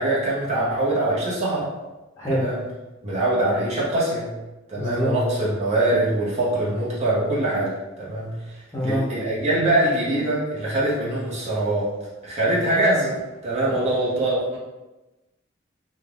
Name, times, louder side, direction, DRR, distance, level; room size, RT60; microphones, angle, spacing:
voice 1, 0.0-1.7 2.3-2.6 3.0-4.3 4.7-8.3 8.8-11.9 12.2-13.2 13.4-14.6, right 1 dB, 35° right, -8 dB, 0.7 m, -23 dB
voice 2, 4.7-5.1 8.7-9.0, equal, 20° left, -10 dB, 0.7 m, -25 dB
2.4 x 2.1 x 3.3 m, 1.1 s
head